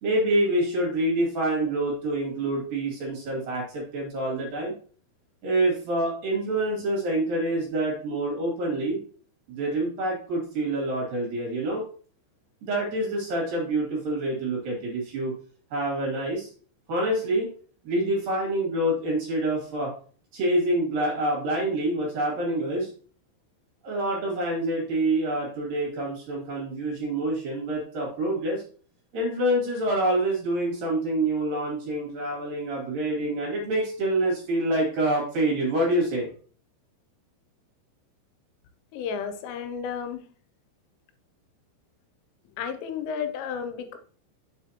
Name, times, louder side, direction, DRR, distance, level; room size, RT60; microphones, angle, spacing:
voice 1, 0.0-4.7 5.4-9.0 9.5-11.8 12.6-15.3 15.7-16.5 16.9-17.5 17.9-19.9 20.3-22.9 23.8-28.6 29.1-36.3, right 1 dB, 55° right, -2 dB, 3.6 m, -26 dB
voice 2, 38.9-40.3 42.6-44.0, left 7 dB, 90° left, 8 dB, 3.3 m, -32 dB
7.3 x 6.2 x 2.9 m, 0.43 s
omnidirectional pair, 5.6 m